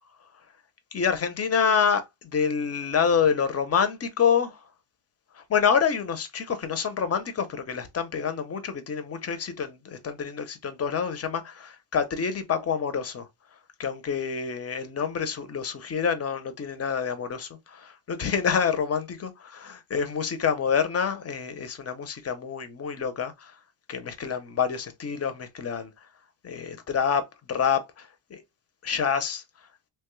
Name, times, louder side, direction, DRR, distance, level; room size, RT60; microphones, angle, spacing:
voice 1, 0.9-4.6 5.3-13.3 13.8-19.0 19.9-23.5 23.9-25.9 26.4-27.2 27.5-28.4 28.8-29.4, left 7 dB, 30° left, 0.6 m, -27 dB
3.0 x 2.3 x 3.0 m
cardioid pair, 105°, 49 cm